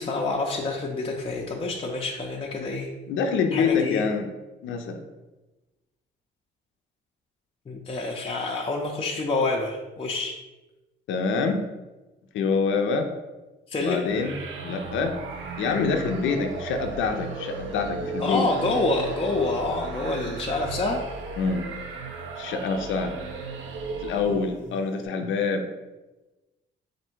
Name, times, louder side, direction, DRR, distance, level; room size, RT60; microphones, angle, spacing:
voice 1, 0.0-2.9 3.5-4.0 7.7-10.4 13.7-14.1 18.2-21.0, left 2 dB, 30° left, -1 dB, 0.5 m, -27 dB
voice 2, 3.1-4.3 4.6-5.0 11.1-11.7 12.3-13.1 13.8-14.4 14.6-15.2 15.6-18.5 21.4-21.7 22.4-23.1 24.0-25.6, left 5 dB, 80° left, 5 dB, 0.5 m, -26 dB
sound 1, 14.1-24.6, right 4 dB, 75° right, 0.6 m, -36 dB
3.4 x 2.6 x 4.4 m, 1.1 s
cardioid pair, 90°, 20 cm